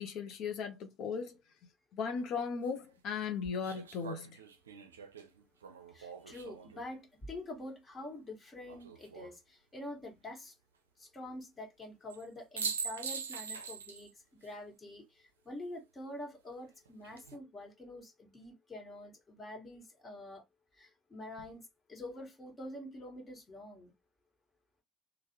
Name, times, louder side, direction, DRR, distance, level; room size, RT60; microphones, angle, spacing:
voice 1, 0.0-1.4 1.9-4.4, left 6 dB, 60° left, 0.8 m, -37 dB
sound 1, 2.1-2.2 3.6-6.8 8.7-9.3 12.1-12.2 12.6-14.1 14.4-14.5 16.8-17.3, right 6 dB, 85° right, 0.4 m, -42 dB
voice 2, 5.9-10.5 11.0-14.1 14.4-20.4 20.8-21.6 21.9-23.9, left 1 dB, 30° left, 1.6 m, -46 dB
3.3 x 2.4 x 2.9 m
hypercardioid pair, 55°, 0 cm